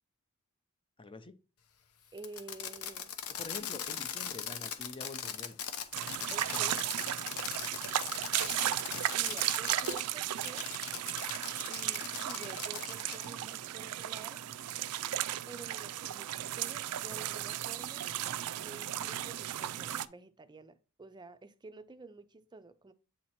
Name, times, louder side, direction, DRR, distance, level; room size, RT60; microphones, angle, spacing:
voice 1, 1.0-1.3 3.3-5.6 6.5-6.6, left 3 dB, 25° left, 0.6 m, -46 dB
voice 2, 2.1-3.2 3.6-3.7 6.3-6.8 9.1-10.7 11.6-14.4 15.5-18.1 18.5-22.9, right 3 dB, 20° right, 0.5 m, -50 dB
Fireworks, 2.2-10.0 10.4-13.3, left 8 dB, 75° left, 0.9 m, -40 dB
sound 1, 5.9-20.1, right 12 dB, 85° right, 0.4 m, -35 dB
8.5 x 2.9 x 4.2 m
head